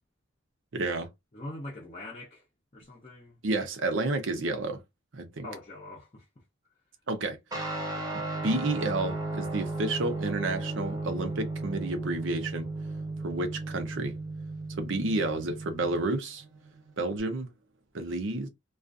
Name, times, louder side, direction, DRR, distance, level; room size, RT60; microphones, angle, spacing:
voice 1, 0.7-1.1 3.4-4.8 5.1-5.5 7.1-7.4 8.4-12.7 13.2-14.1 14.8-16.4 17.0-17.5 17.9-18.5, right 2 dB, 70° right, 0.6 m, -30 dB
voice 2, 1.3-2.4 2.7-3.4 5.4-6.3, left 1 dB, 30° left, 0.6 m, -42 dB
Guitar, 7.5-17.2, right 2 dB, 20° right, 0.8 m, -35 dB
2.4 x 2.4 x 2.4 m
head